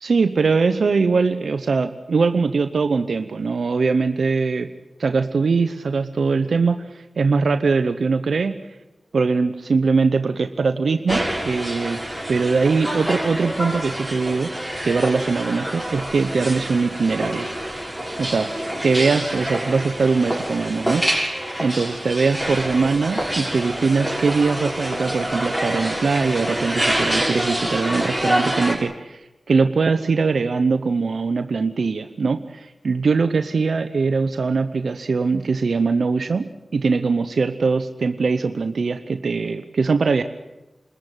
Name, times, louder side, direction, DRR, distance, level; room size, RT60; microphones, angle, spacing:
voice 1, 0.0-4.7 5.0-8.5 9.1-12.0 12.3-14.5 14.8-17.5 18.2-21.3 21.6-40.2, right 4 dB, 80° right, 9 dB, 0.9 m, -21 dB
sound 1, 11.1-28.8, right 1 dB, 5° left, 6.2 m, -26 dB
27.5 x 14.5 x 9.2 m, 0.99 s
cardioid pair, 50°, 0 cm